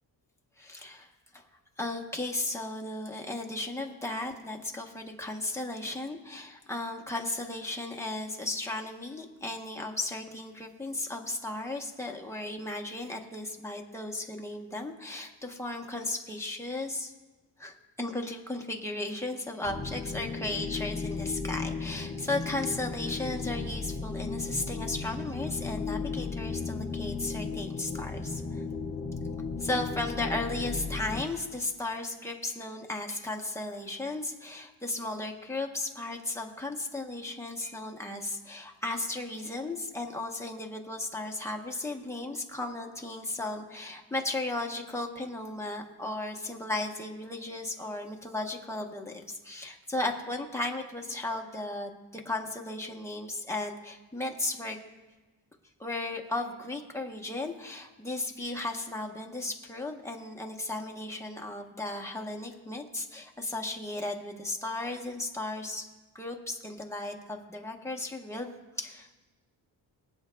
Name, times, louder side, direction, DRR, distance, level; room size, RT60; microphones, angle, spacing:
voice 1, 0.6-1.4 1.8-17.1 17.6-28.6 29.6-54.8 55.8-65.9 66.1-68.5 68.8-69.2, left 2 dB, 5° left, 1 dB, 0.9 m, -35 dB
sound 1, 19.6-31.2, left 4 dB, 35° left, 1.6 m, -35 dB
24.5 x 8.3 x 2.3 m, 1.2 s
wide cardioid pair, 180°, 43 cm